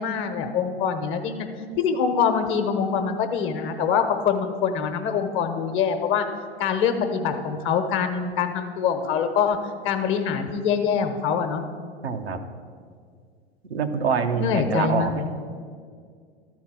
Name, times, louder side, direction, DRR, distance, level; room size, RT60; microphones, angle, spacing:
voice 1, 0.0-1.5 1.8-6.2 6.6-9.6 9.8-11.6 14.4-15.3, left 6 dB, 40° left, 7 dB, 1.1 m, -24 dB
voice 2, 12.0-12.5 13.7-15.3, right 5 dB, 80° right, 6 dB, 0.8 m, -25 dB
12.5 x 4.6 x 7.4 m, 2.1 s
figure-of-eight pair, 90°, 31 cm